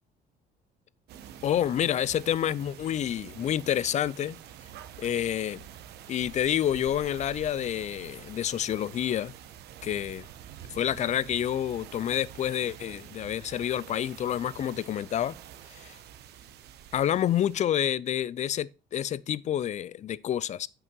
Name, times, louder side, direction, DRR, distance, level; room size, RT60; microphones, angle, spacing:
sound 1, 1.1-17.6, right 10 dB, 80° right, 1.0 m, -47 dB
voice 1, 1.4-4.4 5.0-5.6 6.1-9.3 9.8-10.2 10.7-15.3 15.7-16.0 16.9-20.7, left 10 dB, 45° left, 0.4 m, -28 dB
8.0 x 6.1 x 4.5 m
cardioid pair, 110°, 17 cm